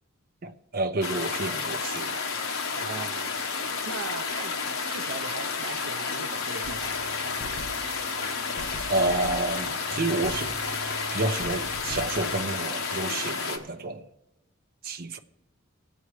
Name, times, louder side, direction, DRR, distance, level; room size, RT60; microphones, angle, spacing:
voice 1, 0.4-2.2 8.9-10.5 11.1-14.1 14.8-15.2, right 2 dB, 45° right, 0.7 m, -29 dB
sound 1, 1.0-13.6, left 4 dB, 70° left, 1.1 m, -31 dB
voice 2, 2.8-4.5 4.9-7.1, right 5 dB, 85° right, 0.5 m, -40 dB
sound 2, 6.6-12.4, left 1 dB, 50° left, 0.9 m, -41 dB
20.0 x 8.2 x 3.2 m
head